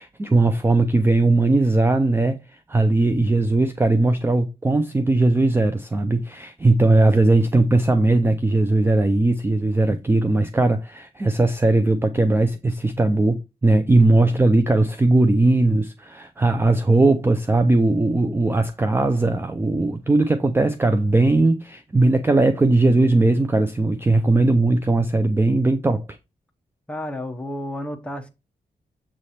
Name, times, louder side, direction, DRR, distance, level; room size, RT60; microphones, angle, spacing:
voice 1, 0.0-26.0, right 2 dB, 15° right, 0.4 m, -19 dB
voice 2, 26.9-28.3, left 1 dB, 5° left, 1.0 m, -31 dB
7.4 x 3.2 x 4.1 m
wide cardioid pair, 125°, 15 cm